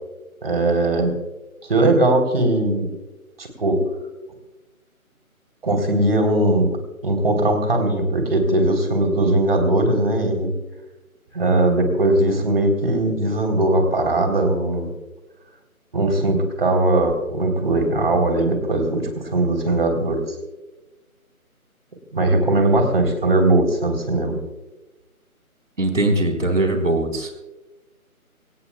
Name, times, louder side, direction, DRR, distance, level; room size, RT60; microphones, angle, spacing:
voice 1, 0.4-1.1 1.7-2.9 3.4-3.8 5.6-6.7 7.0-10.5 11.3-14.9 15.9-20.2 22.1-24.4, right 2 dB, 40° right, 5 dB, 3.6 m, -19 dB
voice 2, 25.8-27.3, right 2 dB, 60° right, 4 dB, 3.9 m, -21 dB
25.5 x 18.5 x 2.3 m, 1.1 s
figure-of-eight pair, 155°, 43 cm